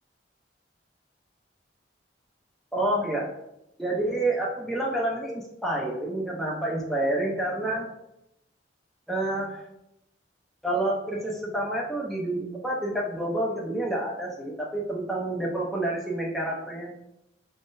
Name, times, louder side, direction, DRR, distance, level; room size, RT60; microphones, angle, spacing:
voice 1, 2.7-3.3 3.8-7.9 9.1-9.6 10.6-16.9, right 1 dB, ahead, -4 dB, 0.7 m, -28 dB
4.4 x 3.7 x 2.6 m, 0.85 s
head